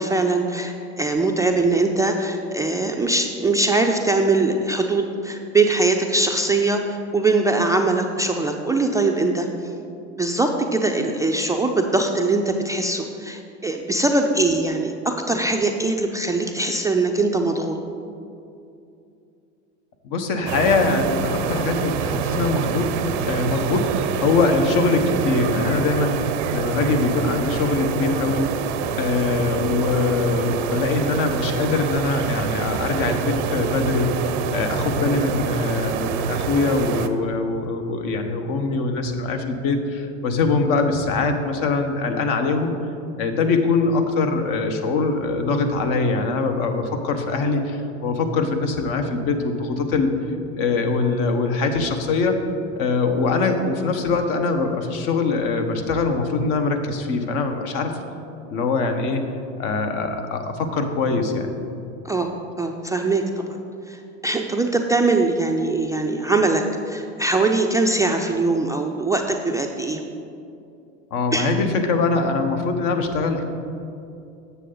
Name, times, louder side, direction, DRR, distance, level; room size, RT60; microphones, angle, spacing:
voice 1, 0.0-9.5 10.2-17.8 62.0-62.3 62.6-63.6 63.9-70.0 71.3-71.5, right 2 dB, 10° right, 2 dB, 0.3 m, -22 dB
voice 2, 20.0-23.0 23.3-28.6 28.8-42.8 43.2-50.1 50.6-52.4 52.7-58.0 58.5-59.2 59.6-61.5 71.1-73.4, left 3 dB, 60° left, 6 dB, 1.0 m, -22 dB
sound 1, 20.4-37.1, right 7 dB, 80° right, 0.6 m, -26 dB
8.2 x 6.8 x 3.8 m, 2.6 s
hypercardioid pair, 90°, 36 cm